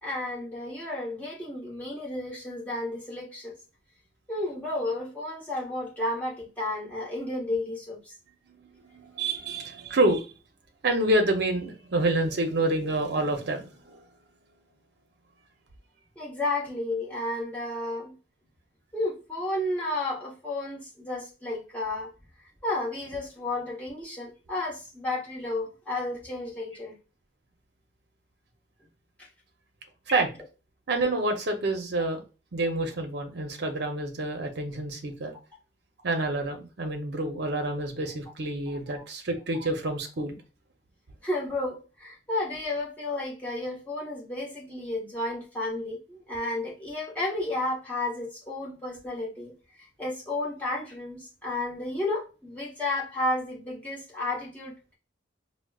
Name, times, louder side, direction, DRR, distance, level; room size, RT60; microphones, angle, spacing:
voice 1, 0.0-3.5 4.3-8.0 16.2-18.1 18.9-22.1 22.6-26.9 29.2-29.3 38.7-39.0 41.2-54.7, left 2 dB, 10° left, 1.0 m, -32 dB
voice 2, 8.6-10.3 10.8-14.1 30.1-30.3 30.9-32.2 32.5-35.3 36.0-40.4, right 2 dB, 60° right, 0.6 m, -28 dB
4.8 x 2.1 x 2.3 m
head